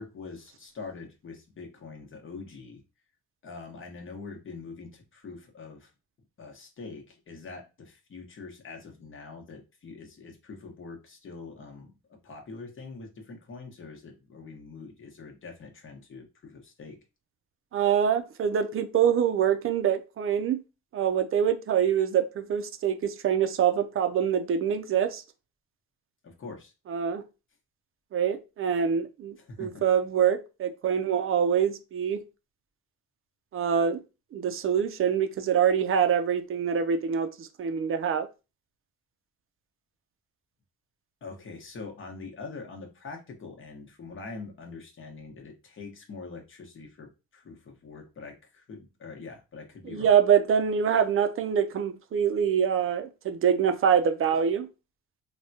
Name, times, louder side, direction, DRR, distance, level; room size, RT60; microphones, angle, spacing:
voice 1, 0.0-2.8 3.4-5.9 6.4-11.9 12.2-17.0 26.2-26.7 29.4-29.8 41.2-50.1, left 4 dB, 40° left, 1.0 m, -44 dB
voice 2, 17.7-20.6 20.9-25.2 26.9-27.2 28.1-32.2 33.5-34.0 34.3-38.3 49.9-54.7, right 8 dB, 45° right, 0.5 m, -25 dB
3.4 x 2.2 x 2.7 m
cardioid pair, 90°, 30 cm